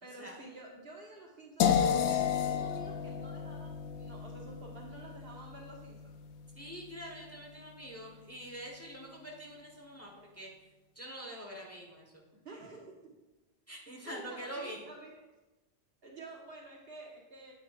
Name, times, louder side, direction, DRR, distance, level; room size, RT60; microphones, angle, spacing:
voice 1, 0.0-6.2 12.4-13.1 14.0-15.1 16.0-17.5, right 2 dB, 60° right, -2 dB, 1.7 m, -50 dB
sound 1, 1.6-7.5, left 8 dB, 85° left, 0.9 m, -33 dB
voice 2, 6.6-10.5 10.9-12.2 13.7-14.8, equal, 15° left, -1 dB, 1.2 m, -45 dB
9.4 x 8.4 x 2.5 m, 1.1 s
omnidirectional pair, 1.1 m